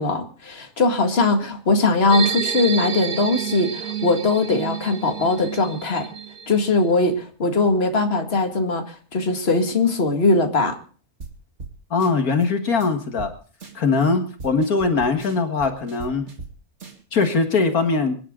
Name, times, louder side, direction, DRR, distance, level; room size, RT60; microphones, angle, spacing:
voice 1, 0.0-6.1 6.5-10.8, left 3 dB, 40° left, 5 dB, 2.3 m, -20 dB
sound 1, 2.1-6.8, right 8 dB, 90° right, 1.6 m, -29 dB
sound 2, 11.2-11.3 11.6-11.7 12.0-12.5 12.8-12.9 13.2-13.3 13.6-14.1 14.4-16.5 16.8-17.3, right 4 dB, 50° right, 2.5 m, -39 dB
voice 2, 11.9-13.3 13.7-16.3 17.1-18.2, left 4 dB, 75° left, 6 dB, 2.1 m, -21 dB
25.0 x 11.0 x 3.7 m, 0.40 s
omnidirectional pair, 1.6 m